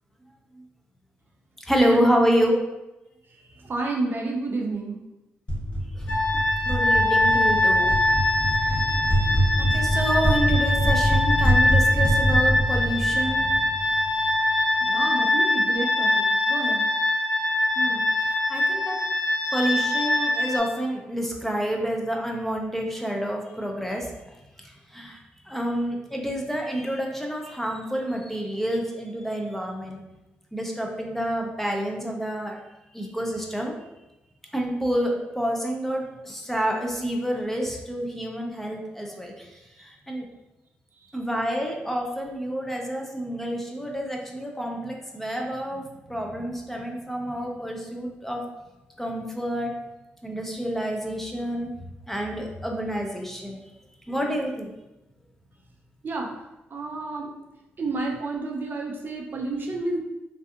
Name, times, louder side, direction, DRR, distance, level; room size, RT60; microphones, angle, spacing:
voice 1, 1.7-2.6 6.0-6.1 6.3-7.9 8.6-9.1 9.6-13.7 17.8-18.0 18.3-19.0 19.5-24.1 24.9-25.2 25.4-30.0 30.5-32.6 32.9-33.8 34.5-39.5 39.8-40.3 41.1-45.8 46.1-48.4 49.0-49.7 50.2-51.7 52.1-53.6 54.1-54.7, equal, 5° left, 0 dB, 0.6 m, -28 dB
voice 2, 3.6-5.0 14.8-16.9 41.1-41.2 56.0-56.3 56.7-57.3 57.8-60.0, right 3 dB, 50° right, 0 dB, 0.5 m, -30 dB
sound 1, 5.5-14.1, equal, 30° left, 1.0 m, -24 dB
sound 2, 6.1-20.6, left 1 dB, 75° left, 0.7 m, -23 dB
2.6 x 2.4 x 2.4 m, 0.98 s
supercardioid pair, 45°, 5 cm